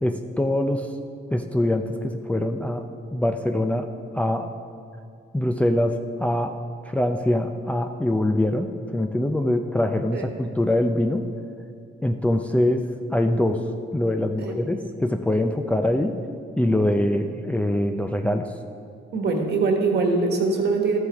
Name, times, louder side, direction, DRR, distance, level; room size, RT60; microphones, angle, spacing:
voice 1, 0.0-0.9 1.3-4.5 5.3-6.6 6.9-11.3 12.0-13.6 13.9-16.2 16.6-18.5, left 1 dB, 5° left, 4 dB, 0.4 m, -24 dB
voice 2, 19.1-21.0, right 3 dB, 60° right, 3 dB, 1.5 m, -22 dB
12.5 x 7.8 x 3.5 m, 2.4 s
cardioid pair, 90°, 20 cm